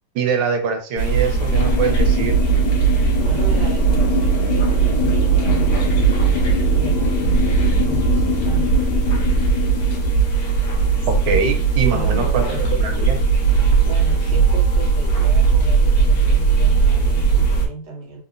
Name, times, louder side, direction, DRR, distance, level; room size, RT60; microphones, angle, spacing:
voice 1, 0.1-2.4 11.1-13.2, right 5 dB, 85° right, 5 dB, 1.6 m, -23 dB
sound 1, 1.0-17.7, right 5 dB, 60° left, 1.2 m, -18 dB
sound 2, 1.5-10.1, right 2 dB, 85° left, 1.6 m, -22 dB
voice 2, 3.2-8.8 11.9-12.6 13.8-18.2, right 2 dB, 60° right, -1 dB, 1.3 m, -35 dB
3.6 x 2.9 x 2.5 m, 0.38 s
omnidirectional pair, 2.2 m